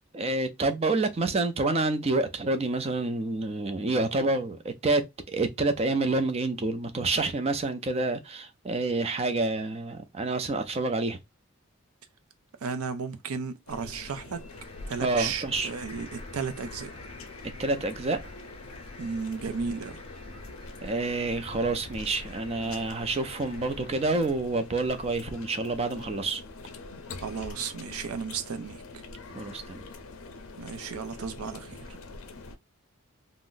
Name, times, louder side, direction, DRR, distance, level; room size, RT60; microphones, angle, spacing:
voice 1, 0.1-11.2 15.0-15.7 17.6-18.2 20.8-26.4 29.3-29.8, right 2 dB, 30° right, 0.4 m, -28 dB
voice 2, 12.6-14.4 14.9-16.9 19.0-20.0 27.2-28.8 30.6-32.0, right 5 dB, 85° right, 0.5 m, -34 dB
sound 1, 13.7-32.6, left 3 dB, 75° left, 0.5 m, -44 dB
sound 2, 14.5-24.3, left 2 dB, 25° left, 0.6 m, -49 dB
2.5 x 2.0 x 3.7 m
head